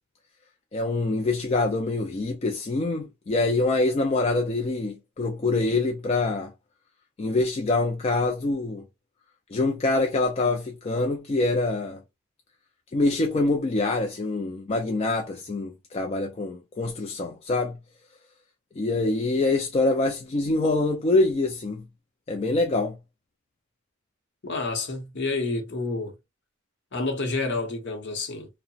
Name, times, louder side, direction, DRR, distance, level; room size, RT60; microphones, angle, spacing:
voice 1, 0.7-6.5 7.2-8.8 9.5-12.0 12.9-17.8 18.8-21.8 22.3-23.0, left 2 dB, 30° left, 0.3 m, -25 dB
voice 2, 24.4-26.1 26.9-28.5, left 3 dB, 55° left, 0.8 m, -29 dB
2.8 x 2.1 x 2.6 m
head